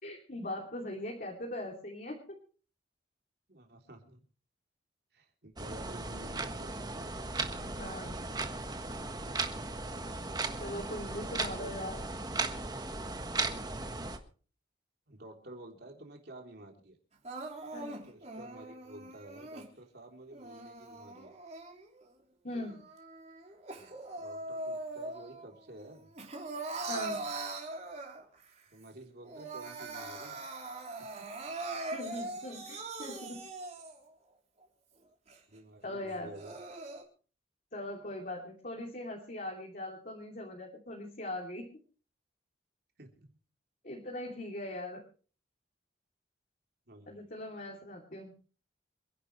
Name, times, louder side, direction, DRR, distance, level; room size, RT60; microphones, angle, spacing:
voice 1, 0.0-2.4 7.6-8.2 10.6-12.0 17.7-18.0 22.4-22.8 26.9-27.2 31.9-33.4 35.8-36.3 37.7-41.7 43.8-45.0 47.1-48.3, left 1 dB, 45° left, -1 dB, 3.0 m, -40 dB
voice 2, 3.5-4.2 5.1-7.0 10.9-11.9 15.1-17.0 18.0-21.4 23.8-26.1 28.7-30.4 31.0-31.3 35.5-36.6 43.0-43.4 46.9-47.2, right 1 dB, 60° right, 2 dB, 3.6 m, -51 dB
sound 1, 5.6-14.2, right 3 dB, 25° right, 1.4 m, -37 dB
Crying sobbing, 17.2-19.7 20.3-22.1 22.5-25.5 25.8-28.4 28.9-29.0 29.2-34.1 34.6-34.7 35.3-35.4 36.1-37.0, right 2 dB, 40° right, 3.5 m, -41 dB
27.5 x 11.0 x 3.2 m, 0.39 s
head